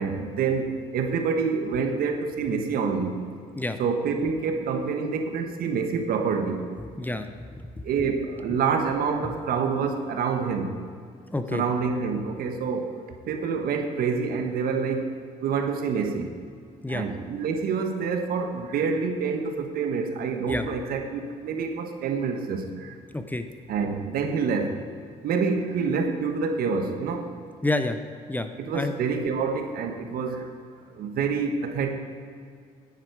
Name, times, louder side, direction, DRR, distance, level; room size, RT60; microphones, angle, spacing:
voice 1, 0.0-3.2 3.8-6.7 7.8-10.7 11.5-13.0 13.3-15.1 15.4-16.3 16.9-22.9 23.7-24.8 25.2-27.3 28.6-30.5 30.9-31.9, right 5 dB, 70° right, 5 dB, 1.2 m, -27 dB
voice 2, 7.0-7.3 7.6-7.7 11.3-11.6 16.8-17.1 20.5-20.7 23.1-23.5 27.6-28.0 28.3-28.9, left 2 dB, 10° left, 8 dB, 0.6 m, -28 dB
9.6 x 9.6 x 4.7 m, 2.2 s
cardioid pair, 90°, 16 cm